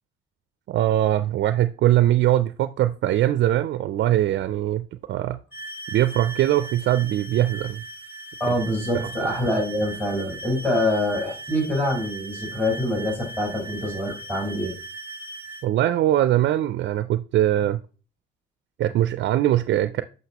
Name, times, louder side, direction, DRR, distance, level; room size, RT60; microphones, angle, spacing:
voice 1, 0.7-5.4 5.9-7.8 8.5-8.6 8.9-9.1 15.6-17.8 18.8-20.0, right 13 dB, 65° right, 11 dB, 0.4 m, -21 dB
sound 1, 5.5-15.7, right 2 dB, 10° right, 0.8 m, -39 dB
voice 2, 8.4-14.7, left 1 dB, 10° left, 0 dB, 3.9 m, -25 dB
8.0 x 5.4 x 2.9 m, 0.37 s
cardioid pair, 90°, 20 cm